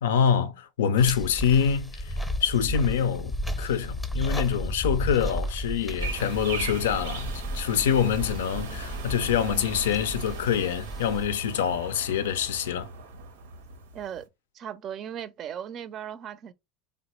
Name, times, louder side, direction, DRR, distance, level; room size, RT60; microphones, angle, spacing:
voice 1, 0.0-12.9, left 8 dB, 85° left, 0.4 m, -25 dB
sound 1, 1.0-11.3, equal, 10° left, 0.6 m, -33 dB
sound 2, 6.0-14.2, right 4 dB, 90° right, 0.6 m, -38 dB
voice 2, 13.9-14.3 14.5-16.5, right 9 dB, 45° right, 0.4 m, -37 dB
3.2 x 2.0 x 2.9 m
supercardioid pair, 105°, 0 cm